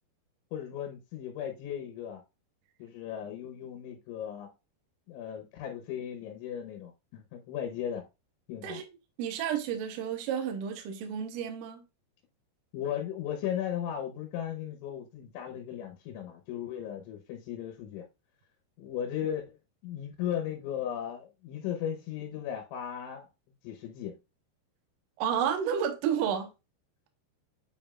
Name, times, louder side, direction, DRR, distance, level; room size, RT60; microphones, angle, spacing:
voice 1, 0.5-2.2 2.8-4.5 5.1-8.1 8.5-8.8 12.7-18.1 18.8-19.6 19.8-23.3 23.6-24.2, left 9 dB, 90° left, 3.4 m, -36 dB
voice 2, 9.2-11.8 25.2-26.5, right 8 dB, 80° right, 1.9 m, -31 dB
7.9 x 5.3 x 2.4 m
omnidirectional pair, 5.2 m